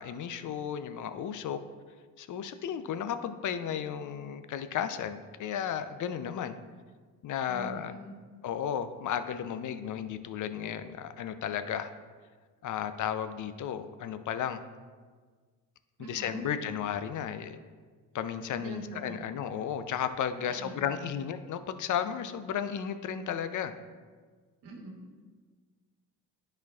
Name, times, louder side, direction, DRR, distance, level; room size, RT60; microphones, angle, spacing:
voice 1, 0.0-1.6 2.2-6.6 7.2-7.9 8.4-11.9 12.6-14.6 16.0-17.6 18.1-23.7, left 8 dB, 50° left, 10 dB, 0.5 m, -34 dB
voice 2, 7.5-8.1 16.0-16.4 18.6-19.2 20.5-20.7 21.0-21.1 24.6-25.2, right 2 dB, 80° right, 0 dB, 1.3 m, -44 dB
10.0 x 4.4 x 2.4 m, 1.5 s
supercardioid pair, 70°, 39 cm